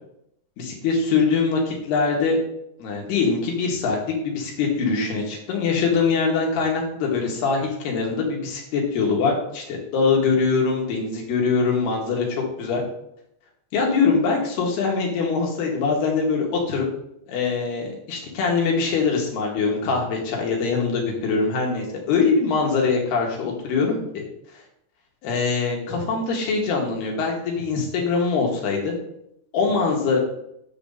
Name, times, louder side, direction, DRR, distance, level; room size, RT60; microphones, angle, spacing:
voice 1, 0.6-2.4 2.8-4.0 4.2-12.8 13.7-16.9 17.3-24.0 25.2-28.9 29.5-30.2, left 4 dB, 80° left, -1 dB, 3.9 m, -23 dB
10.5 x 4.1 x 7.0 m, 0.77 s
omnidirectional pair, 4.6 m